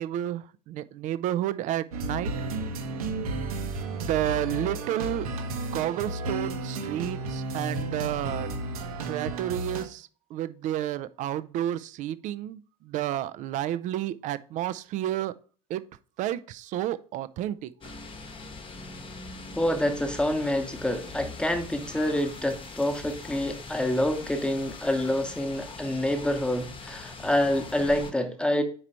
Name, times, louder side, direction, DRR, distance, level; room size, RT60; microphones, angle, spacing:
voice 1, 0.0-2.3 3.9-5.3 5.7-8.5 9.1-12.6 12.9-15.3 15.7-15.8 16.2-17.7, right 12 dB, 40° right, 0.4 m, -31 dB
sound 1, 1.9-9.9, right 2 dB, 70° right, 0.9 m, -33 dB
sound 2, 17.8-28.1, left 4 dB, 25° left, 1.0 m, -42 dB
voice 2, 19.6-28.6, left 1 dB, 5° left, 1.0 m, -27 dB
4.8 x 4.6 x 4.2 m
figure-of-eight pair, 70°, 19 cm